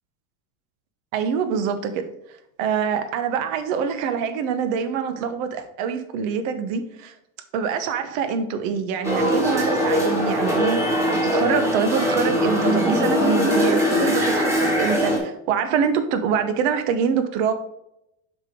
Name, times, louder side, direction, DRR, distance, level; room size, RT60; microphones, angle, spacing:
voice 1, 1.1-2.1 2.6-7.1 7.5-17.5, right 6 dB, 65° right, 9 dB, 1.1 m, -25 dB
sound 1, 9.0-15.2, equal, 5° right, 1.7 m, -21 dB
7.3 x 5.2 x 3.7 m, 0.82 s
cardioid pair, 165°, 42 cm